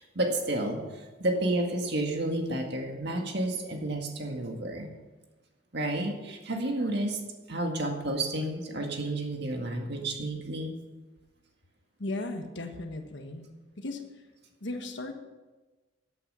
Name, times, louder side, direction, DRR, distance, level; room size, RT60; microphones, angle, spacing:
voice 1, 0.0-4.9 5.7-7.2 7.5-10.8, right 1 dB, 60° right, 3 dB, 2.0 m, -31 dB
voice 2, 12.0-13.5 13.8-14.0 14.6-15.1, left 2 dB, 65° left, 5 dB, 1.5 m, -36 dB
14.0 x 8.6 x 5.6 m, 1.2 s
head